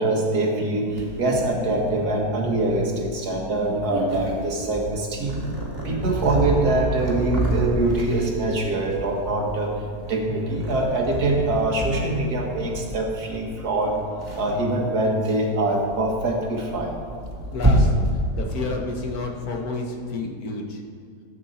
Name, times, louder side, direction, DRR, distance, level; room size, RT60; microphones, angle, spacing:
voice 1, 0.0-5.4 5.8-9.7 10.1-14.0 14.4-16.9, right 2 dB, 70° right, 0 dB, 2.1 m, -24 dB
Purr, 0.9-19.6, right 1 dB, 15° right, 2.4 m, -29 dB
voice 2, 17.5-17.9 18.4-20.8, left 3 dB, 65° left, 2 dB, 1.6 m, -30 dB
14.5 x 8.9 x 4.3 m, 2.1 s
omnidirectional pair, 1.7 m